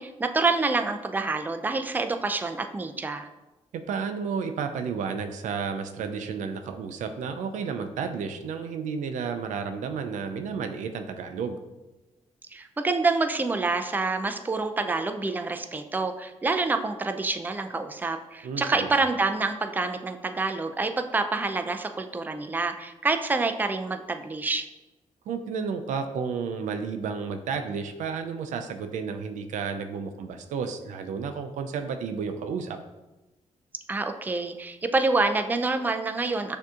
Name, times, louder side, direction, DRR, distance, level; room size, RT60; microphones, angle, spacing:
voice 1, 0.0-3.3 12.5-24.7 33.9-36.6, right 3 dB, 15° right, 7 dB, 0.3 m, -27 dB
voice 2, 3.7-11.6 18.4-18.9 25.3-32.8, right 6 dB, 85° right, 7 dB, 0.4 m, -32 dB
6.2 x 2.7 x 2.4 m, 1.1 s
cardioid pair, 65°, 12 cm